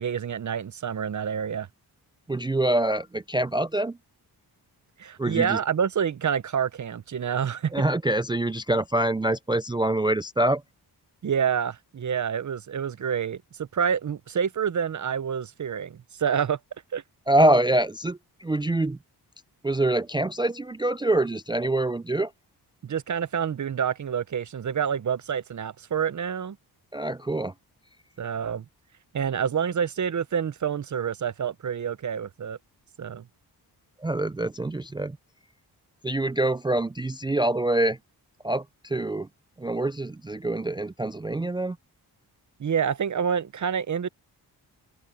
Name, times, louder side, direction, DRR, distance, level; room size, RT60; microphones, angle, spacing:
voice 1, 0.0-1.7 5.0-7.7 11.2-16.6 16.9-17.0 22.8-26.6 28.2-28.6 29.1-32.6 33.0-33.2 42.6-44.1, right 7 dB, 45° right, 0.8 m, -28 dB
voice 2, 2.3-4.0 5.2-5.6 7.7-10.6 17.3-19.0 19.6-22.3 26.9-27.5 34.0-35.2 36.0-38.0 38.4-39.3 39.6-41.8, right 1 dB, 10° right, 0.4 m, -25 dB
cardioid pair, 90°, 40 cm